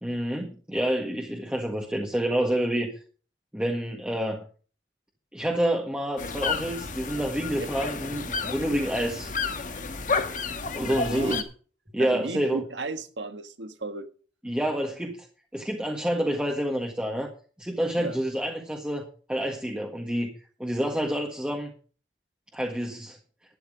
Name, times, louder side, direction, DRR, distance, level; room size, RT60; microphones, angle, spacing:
voice 1, 0.0-2.9 3.5-4.4 5.3-9.3 10.7-11.4 11.9-12.6 14.4-15.3 15.5-17.3 17.6-20.3 20.6-21.7 22.5-23.2, equal, 5° right, 0 dB, 1.6 m, -28 dB
sound 1, 6.2-11.4, left 4 dB, 45° left, 1.4 m, -31 dB
voice 2, 10.1-10.5 10.8-11.5 12.0-14.1 18.0-18.2, right 2 dB, 80° right, 10 dB, 1.5 m, -35 dB
12.5 x 10.0 x 5.0 m, 0.40 s
head